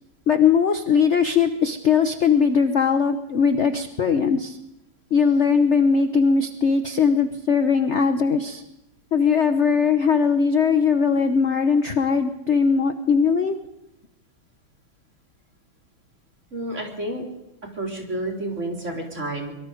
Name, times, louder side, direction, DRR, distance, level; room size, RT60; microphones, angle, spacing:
voice 1, 0.3-4.6 5.1-8.6 9.1-13.6, left 6 dB, 45° left, 8 dB, 0.9 m, -20 dB
voice 2, 5.9-6.4 9.9-12.1 16.5-17.2 17.7-19.5, right 1 dB, 35° right, 0 dB, 4.4 m, -33 dB
24.0 x 23.0 x 5.2 m, 0.89 s
omnidirectional pair, 2.3 m